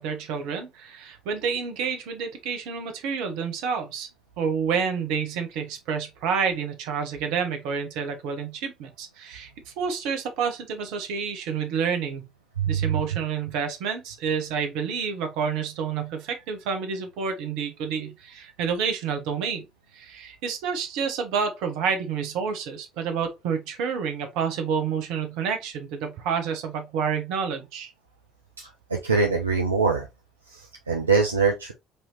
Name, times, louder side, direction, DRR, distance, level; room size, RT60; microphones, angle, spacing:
voice 1, 0.0-4.1 4.4-12.3 12.7-19.7 19.9-27.9, right 6 dB, 65° right, 0.9 m, -29 dB
voice 2, 12.6-13.0 28.6-30.1 30.5-31.7, right 4 dB, 85° right, 0.4 m, -24 dB
4.6 x 2.8 x 2.8 m
figure-of-eight pair, 50°, 0 cm